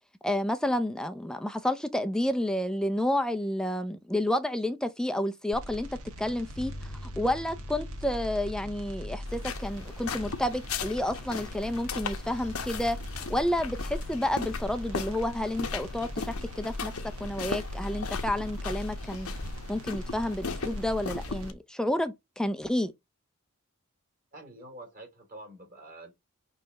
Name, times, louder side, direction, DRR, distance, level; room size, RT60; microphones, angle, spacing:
voice 1, 0.2-5.9 6.2-6.7 7.0-13.0 13.3-16.9 17.2-19.3 19.7-22.9, left 1 dB, 5° left, 0.5 m, -30 dB
sound 1, 5.5-21.5, equal, 80° right, 1.4 m, -42 dB
sound 2, 6.5-15.8, left 1 dB, 30° left, 1.0 m, -50 dB
sound 3, 9.3-21.5, left 4 dB, 70° left, 0.9 m, -37 dB
voice 2, 24.3-26.1, right 1 dB, 40° right, 3.5 m, -47 dB
6.5 x 3.3 x 5.2 m
head